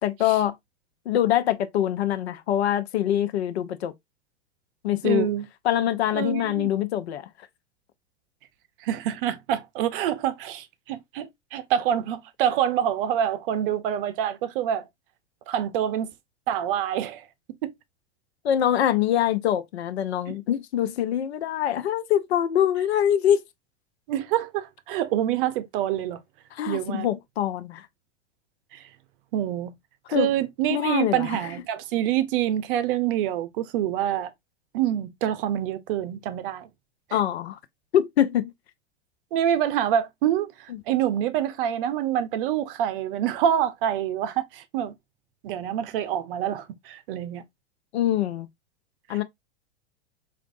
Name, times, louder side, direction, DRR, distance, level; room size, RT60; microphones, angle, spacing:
voice 1, 0.0-0.6 1.1-3.9 4.8-5.3 5.6-7.3 18.4-23.4 26.5-27.8 30.1-30.3 30.7-31.5 37.1-37.6 37.9-38.5 40.7-40.8 47.9-48.5 49.1-49.2, left 11 dB, 70° left, 0.6 m, -24 dB
voice 2, 5.0-5.5 6.1-6.7 8.8-14.9 15.5-16.1 16.5-17.3 17.6-17.7 20.3-20.4 24.1-26.2 26.7-27.1 28.7-28.8 29.3-29.7 30.1-34.3 34.7-36.7 39.3-44.9 45.4-47.4 49.1-49.2, right 10 dB, 50° right, 0.6 m, -26 dB
4.5 x 2.5 x 2.5 m
hypercardioid pair, 100°, 34 cm